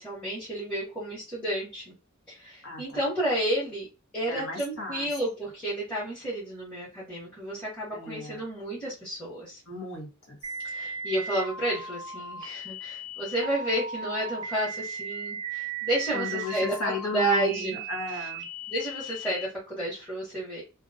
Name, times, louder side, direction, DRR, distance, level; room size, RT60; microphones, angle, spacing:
voice 1, 0.0-1.9 2.3-3.9 4.1-9.6 10.6-17.8 18.7-20.6, right 1 dB, 5° left, -9 dB, 0.9 m, -31 dB
voice 2, 2.6-3.0 4.3-5.1 7.9-8.4 9.7-10.5 16.1-18.5, left 3 dB, 85° left, 0 dB, 1.0 m, -35 dB
sound 1, 10.4-19.4, right 3 dB, 25° right, 0.4 m, -37 dB
2.4 x 2.2 x 2.5 m, 0.29 s
head